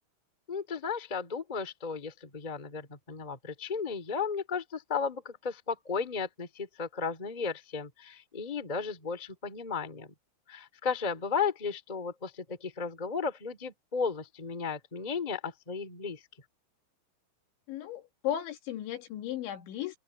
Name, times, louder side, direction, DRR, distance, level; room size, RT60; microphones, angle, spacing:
voice 1, 0.5-10.1 10.5-16.2, left 5 dB, 15° left, 1.9 m, -34 dB
voice 2, 17.7-20.0, left 11 dB, 70° left, 4.4 m, -35 dB
omnidirectional pair, 5.6 m